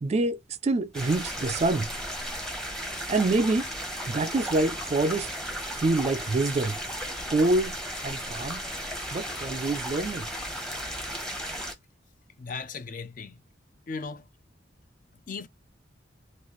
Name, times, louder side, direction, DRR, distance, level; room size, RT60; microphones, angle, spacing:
voice 1, 0.0-1.9 3.1-3.7 4.1-5.3 5.8-6.7 7.3-7.8 8.0-8.6 9.1-10.3, right 2 dB, 35° right, 0.3 m, -26 dB
sound 1, 0.9-11.7, equal, 5° left, 0.8 m, -35 dB
voice 2, 12.4-13.3 13.9-14.3 15.3-15.5, left 4 dB, 45° left, 0.4 m, -36 dB
4.0 x 2.3 x 3.0 m
head